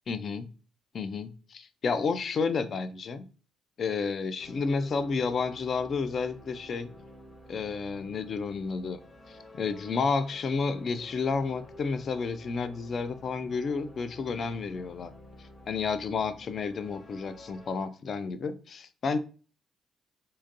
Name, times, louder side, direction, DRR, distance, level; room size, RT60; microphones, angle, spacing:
voice 1, 0.1-0.5 0.9-3.3 3.8-6.9 7.5-9.0 9.3-15.1 15.7-19.2, left 5 dB, 50° left, 12 dB, 0.4 m, -31 dB
sound 1, 4.4-17.9, left 1 dB, 30° left, 0.8 m, -50 dB
3.8 x 2.6 x 2.5 m, 0.37 s
cardioid pair, 90°, 0 cm